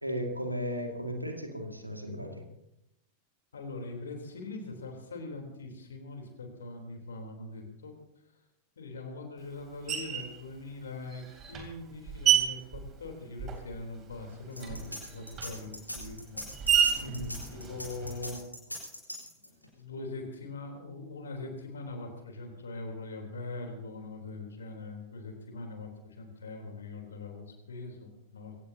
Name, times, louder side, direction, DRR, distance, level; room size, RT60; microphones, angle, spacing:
voice 1, 0.0-2.4 17.0-17.4, equal, 90° right, 4 dB, 2.2 m, -35 dB
voice 2, 3.5-7.9 8.8-11.2 11.5-16.4 17.5-18.4 19.4-28.6, left 2 dB, 70° left, 4 dB, 3.6 m, -42 dB
Screech, 9.9-10.4 11.1-13.8 14.1-18.4, right 9 dB, 30° right, 3.3 m, -31 dB
sound 1, 14.5-19.6, left 1 dB, 85° left, 4.2 m, -40 dB
23.5 x 17.0 x 2.9 m, 0.86 s
figure-of-eight pair, 90°, 0 cm